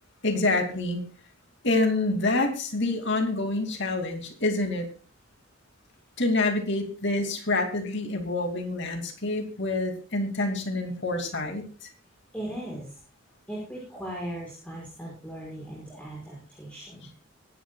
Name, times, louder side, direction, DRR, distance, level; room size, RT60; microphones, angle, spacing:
voice 1, 0.2-1.0 1.6-4.9 6.2-11.9, left 2 dB, 55° left, 4 dB, 2.7 m, -27 dB
voice 2, 12.3-13.0 13.5-17.1, right 1 dB, 5° left, -4 dB, 5.8 m, -38 dB
23.5 x 11.0 x 2.4 m, 0.36 s
head